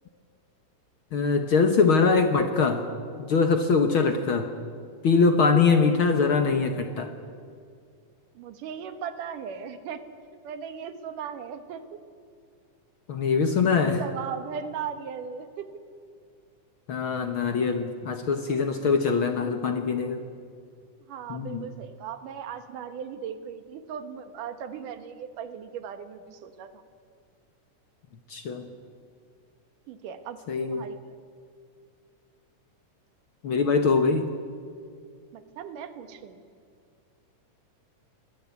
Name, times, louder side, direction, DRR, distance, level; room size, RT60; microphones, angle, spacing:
voice 1, 1.1-2.8 3.2-4.5 5.0-7.1 13.1-14.0 16.9-20.2 21.3-21.6 28.3-28.6 30.5-30.8 33.4-34.3, left 5 dB, 55° left, 7 dB, 1.6 m, -23 dB
voice 2, 8.3-10.0 10.4-12.0 13.8-15.7 21.1-26.8 29.9-31.2 35.3-36.4, right 7 dB, 85° right, 10 dB, 3.0 m, -38 dB
24.0 x 19.0 x 8.4 m, 2.2 s
omnidirectional pair, 3.6 m